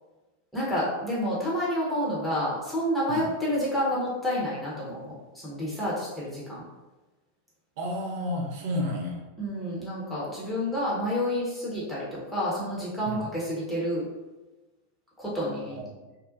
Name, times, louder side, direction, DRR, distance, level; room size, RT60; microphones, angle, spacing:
voice 1, 0.5-5.1 5.4-6.6 9.4-14.0 15.2-15.8, equal, ahead, -8 dB, 0.8 m, -29 dB
voice 2, 7.8-9.2 13.1-13.2 15.6-15.9, left 1 dB, 50° right, 0 dB, 0.5 m, -31 dB
2.6 x 2.0 x 2.5 m, 1.1 s
figure-of-eight pair, 90°, 0 cm